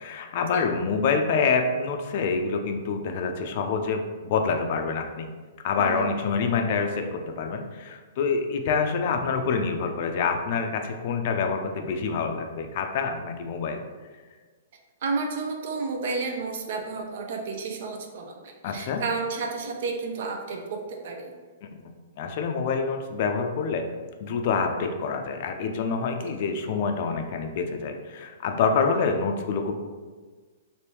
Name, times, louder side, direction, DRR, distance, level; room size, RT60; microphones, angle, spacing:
voice 1, 0.0-5.3 5.6-13.8 18.6-19.0 21.6-21.7 22.2-23.8 24.2-29.7, left 5 dB, 50° left, 5 dB, 0.4 m, -26 dB
voice 2, 5.8-6.1 15.0-21.3, right 4 dB, 60° right, 3 dB, 0.6 m, -31 dB
3.3 x 2.6 x 3.0 m, 1.4 s
hypercardioid pair, 145°, 0 cm